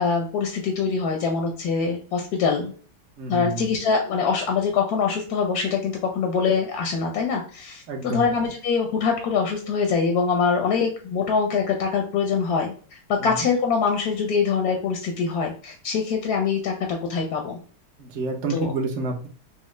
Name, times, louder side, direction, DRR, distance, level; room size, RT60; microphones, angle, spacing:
voice 1, 0.0-2.7 3.3-17.6 18.5-18.7, left 5 dB, 65° left, 2 dB, 1.0 m, -24 dB
voice 2, 3.2-3.7 7.9-8.3 13.2-13.5 18.0-19.3, right 3 dB, 50° right, 1 dB, 1.0 m, -29 dB
6.2 x 2.1 x 3.2 m, 0.41 s
omnidirectional pair, 2.2 m